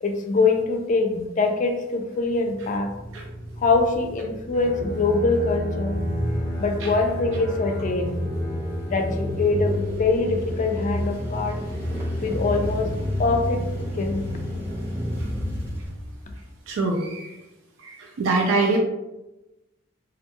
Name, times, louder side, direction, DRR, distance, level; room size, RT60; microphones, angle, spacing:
voice 1, 0.0-2.9 3.6-6.0 6.6-8.1 8.9-11.6 12.2-12.9 13.2-13.7 13.9-14.2, left 3 dB, 40° left, 4 dB, 0.4 m, -23 dB
sound 1, 2.3-16.6, left 1 dB, 15° right, 0.8 m, -31 dB
Bowed string instrument, 4.6-10.4, left 1 dB, 20° left, 0.8 m, -32 dB
voice 2, 16.7-17.4 17.8-18.8, right 3 dB, 85° right, 0 dB, 0.4 m, -24 dB
2.4 x 2.2 x 2.9 m, 0.98 s
head